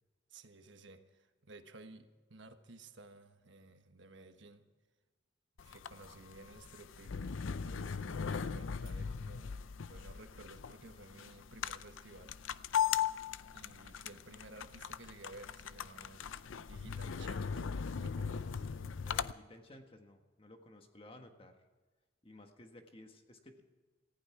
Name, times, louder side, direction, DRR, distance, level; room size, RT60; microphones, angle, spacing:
voice 1, 0.3-4.7 5.6-12.3 13.5-18.6, right 2 dB, 70° right, 7 dB, 1.3 m, -55 dB
sound 1, 5.6-19.3, left 7 dB, 90° left, 0.5 m, -39 dB
voice 2, 18.8-21.6 22.2-23.6, left 1 dB, 30° left, 5 dB, 1.6 m, -56 dB
19.0 x 15.0 x 4.7 m, 1.3 s
head